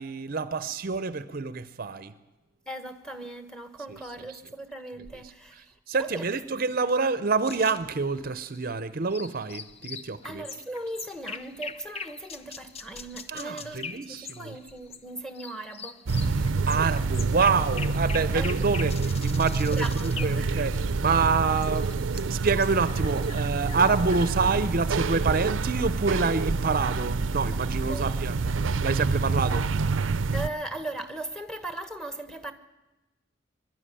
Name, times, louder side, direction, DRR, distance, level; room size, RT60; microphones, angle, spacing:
voice 1, 0.0-2.1 5.9-10.4 13.3-14.6 16.7-18.9 19.2-21.9 22.3-28.3 28.8-29.8, right 4 dB, 50° right, 0.6 m, -27 dB
voice 2, 2.7-5.7 6.0-6.3 10.2-16.6 18.3-18.7 19.6-20.6 27.9-28.2 30.3-32.5, right 1 dB, 5° left, 1.3 m, -38 dB
sound 1, 7.4-15.0 15.3-24.3, left 6 dB, 35° left, 0.6 m, -42 dB
sound 2, 16.1-30.5, right 4 dB, 90° right, 0.6 m, -27 dB
23.0 x 12.0 x 10.0 m
head